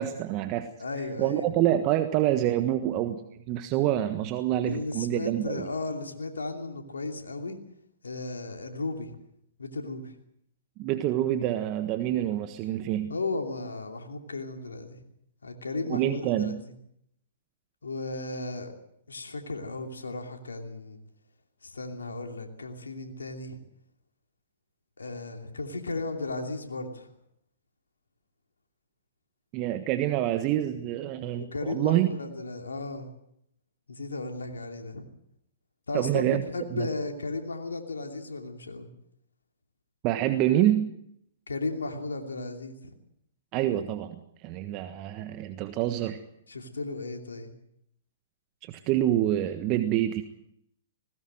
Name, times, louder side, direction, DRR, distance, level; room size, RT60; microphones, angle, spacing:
voice 1, 0.0-0.7 1.2-3.2 3.5-5.7 10.8-13.1 15.9-16.6 29.5-32.1 35.9-36.4 36.7-36.9 40.0-40.9 43.5-46.2 48.6-50.2, right 13 dB, 35° right, 9 dB, 1.4 m, -27 dB
voice 2, 0.8-1.4 4.7-7.6 8.0-9.2 9.6-10.1 13.1-15.0 15.4-16.5 17.8-18.7 19.1-21.0 21.6-23.6 25.0-27.1 31.4-33.1 33.9-35.1 35.9-38.9 41.5-42.9 46.5-47.5, left 3 dB, 85° left, 4 dB, 2.8 m, -35 dB
20.5 x 18.0 x 7.7 m, 0.73 s
hypercardioid pair, 125°, 0 cm